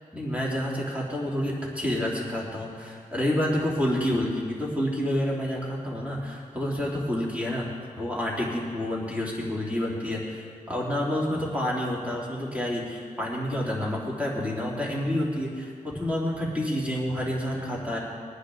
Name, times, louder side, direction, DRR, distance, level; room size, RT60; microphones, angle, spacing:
voice 1, 0.1-7.7 8.0-18.0, left 1 dB, 10° right, -4 dB, 3.0 m, -29 dB
21.5 x 10.0 x 3.9 m, 2.1 s
wide cardioid pair, 100°, 15 cm